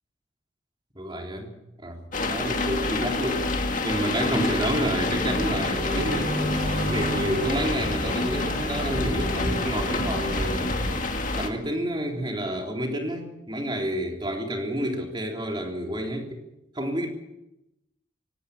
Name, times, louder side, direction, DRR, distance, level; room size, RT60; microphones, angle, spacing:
voice 1, 1.0-1.5 1.8-3.4 3.8-6.3 6.8-10.8 11.4-16.4 16.7-17.1, right 1 dB, 25° right, 2 dB, 3.5 m, -29 dB
sound 1, 2.1-11.5, left 3 dB, 40° left, 2.1 m, -28 dB
sound 2, 5.2-11.0, equal, 50° right, 4.6 m, -31 dB
18.5 x 16.5 x 8.6 m, 0.91 s
head